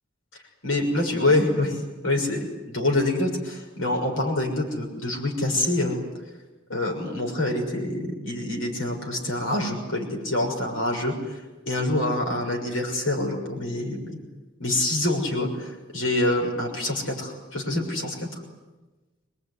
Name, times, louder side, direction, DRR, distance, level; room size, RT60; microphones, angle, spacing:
voice 1, 0.6-6.0 6.7-14.0 14.6-18.4, left 1 dB, 75° left, 2 dB, 6.4 m, -26 dB
25.0 x 21.5 x 9.8 m, 1.1 s
head